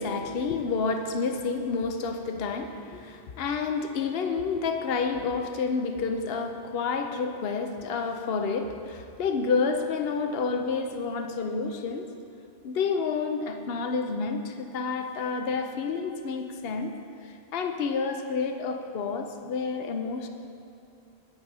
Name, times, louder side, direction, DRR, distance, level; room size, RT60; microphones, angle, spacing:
voice 1, 0.0-12.1 12.6-16.9 17.2-20.3, left 4 dB, 65° left, 5 dB, 0.9 m, -29 dB
9.5 x 8.9 x 5.4 m, 2.6 s
omnidirectional pair, 1.1 m